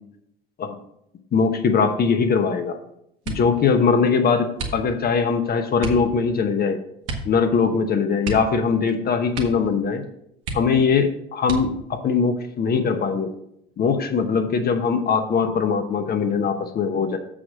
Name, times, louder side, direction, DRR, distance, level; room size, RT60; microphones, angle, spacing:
voice 1, 1.3-2.8 3.3-6.8 7.2-10.0 10.5-13.3 13.8-17.2, left 5 dB, 30° left, 6 dB, 0.9 m, -21 dB
sound 1, 3.2-3.6 4.5-5.2 5.8-6.1 7.0-7.4 7.6-7.7 8.2-9.0 9.3-9.7 10.0-10.1 10.4-11.0 11.4-12.0 12.7-13.3 13.7-14.1, right 3 dB, 50° right, 1.6 m, -33 dB
7.3 x 5.0 x 6.1 m, 0.75 s
figure-of-eight pair, 70°, 31 cm